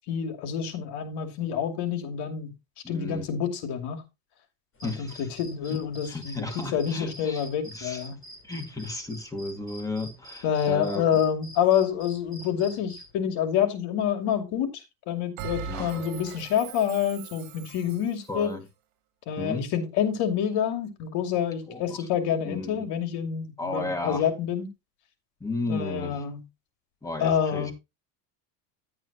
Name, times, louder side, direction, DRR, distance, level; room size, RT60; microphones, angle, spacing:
voice 1, 0.1-2.5 2.9-4.0 4.8-8.2 10.4-18.5 19.3-24.7 25.7-26.4 27.2-27.7, left 8 dB, 60° left, 2.6 m, -27 dB
voice 2, 2.8-3.3 4.8-5.3 5.7-7.5 7.7-8.0 8.4-11.2 15.7-16.1 18.3-18.7 19.3-19.7 21.7-22.1 22.5-22.9 23.6-24.3 25.4-26.3 27.0-27.7, left 2 dB, 5° left, 2.2 m, -34 dB
sound 1, 4.7-13.1, equal, 30° left, 4.9 m, -48 dB
Bell, 15.4-18.2, right 7 dB, 70° right, 2.3 m, -39 dB
10.5 x 8.9 x 2.9 m
cardioid pair, 135°, 45 cm